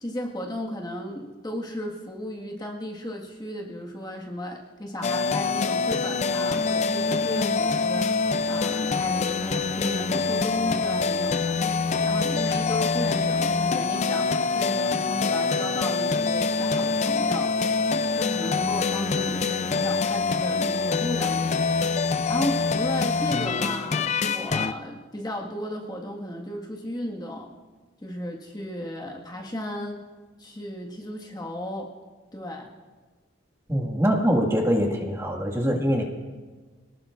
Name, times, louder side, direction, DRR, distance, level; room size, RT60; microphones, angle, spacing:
voice 1, 0.0-11.7 12.0-17.7 18.1-21.7 22.3-27.5 28.0-30.1 30.4-31.9 32.3-32.7, left 1 dB, 20° left, -1 dB, 1.6 m, -34 dB
sound 1, 5.0-24.7, left 4 dB, 35° left, 0.4 m, -25 dB
voice 2, 33.7-36.0, equal, 15° right, 0 dB, 1.8 m, -23 dB
26.5 x 19.0 x 2.5 m, 1.3 s
head